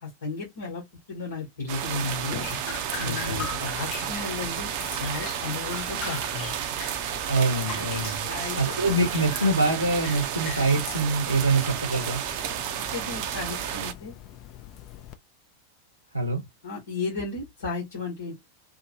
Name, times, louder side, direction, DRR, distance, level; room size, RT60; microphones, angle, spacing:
voice 1, 0.0-0.8 1.1-2.5 3.0-6.6 8.3-8.7 12.9-14.1 16.6-18.3, left 4 dB, 65° left, 1.2 m, -34 dB
sound 1, 1.7-13.9, right 10 dB, 45° right, 0.5 m, -32 dB
Drip, 2.3-15.2, left 9 dB, 40° left, 0.5 m, -41 dB
voice 2, 3.0-3.4 7.3-8.3 8.6-12.2 16.1-16.4, right 2 dB, 90° right, 0.7 m, -25 dB
2.7 x 2.2 x 2.8 m
figure-of-eight pair, 90°, 0 cm